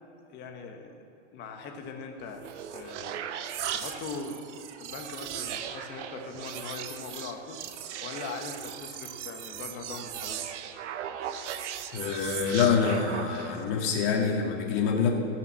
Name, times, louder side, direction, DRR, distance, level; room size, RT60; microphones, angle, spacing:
voice 1, 0.3-0.9 1.3-2.5 2.7-3.2 3.7-7.6 8.0-10.6, left 4 dB, 30° left, 4 dB, 1.2 m, -41 dB
sound 1, 2.2-13.7, right 9 dB, 75° right, 0.8 m, -38 dB
voice 2, 11.9-15.1, left 6 dB, 50° left, 1 dB, 1.9 m, -26 dB
14.5 x 5.8 x 7.3 m, 2.6 s
supercardioid pair, 145°, 35 cm